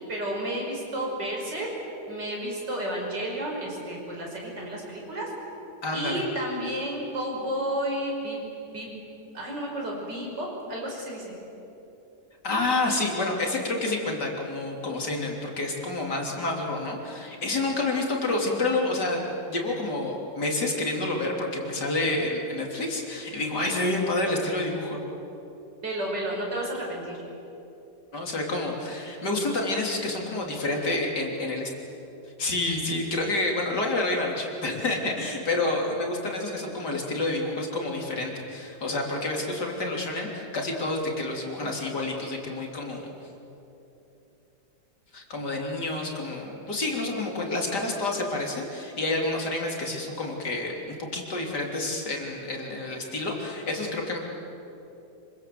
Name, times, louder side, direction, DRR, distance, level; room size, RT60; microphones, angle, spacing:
voice 1, 0.1-1.7 2.1-5.3 5.9-8.4 8.7-8.9 9.3-11.3 25.8-27.2, right 1 dB, 85° right, -1 dB, 6.3 m, -31 dB
voice 2, 5.8-6.2 12.4-25.0 28.1-31.7 32.4-43.0 45.1-54.2, left 2 dB, 70° left, 0 dB, 4.0 m, -29 dB
26.0 x 25.0 x 7.9 m, 3.0 s
omnidirectional pair, 1.8 m